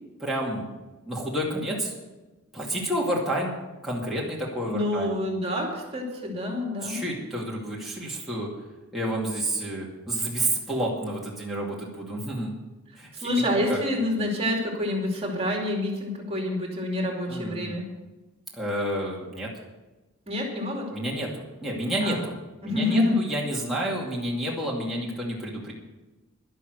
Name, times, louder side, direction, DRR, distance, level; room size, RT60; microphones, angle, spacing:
voice 1, 0.2-0.7 1.1-1.9 2.5-5.1 6.8-8.5 8.9-12.5 13.0-13.8 17.3-17.8 18.5-19.5 20.9-22.3 22.6-25.7, right 1 dB, ahead, -6 dB, 2.4 m, -30 dB
voice 2, 4.7-7.0 13.1-17.8 20.3-20.9 22.0-22.2 22.6-23.2, left 1 dB, 30° right, 0 dB, 2.6 m, -27 dB
11.5 x 11.5 x 6.6 m, 1.1 s
head